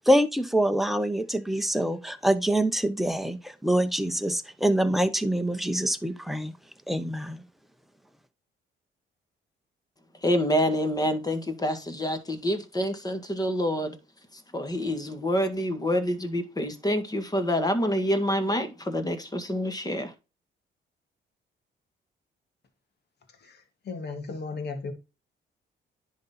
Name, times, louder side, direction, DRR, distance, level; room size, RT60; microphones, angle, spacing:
voice 1, 0.1-6.5 6.9-7.4, right 1 dB, ahead, 1.0 m, -25 dB
voice 2, 10.2-14.0 14.5-20.1, equal, 20° left, 1.8 m, -27 dB
voice 3, 23.4-24.9, left 4 dB, 55° left, 1.9 m, -36 dB
10.5 x 4.0 x 4.3 m
cardioid pair, 90°, 20 cm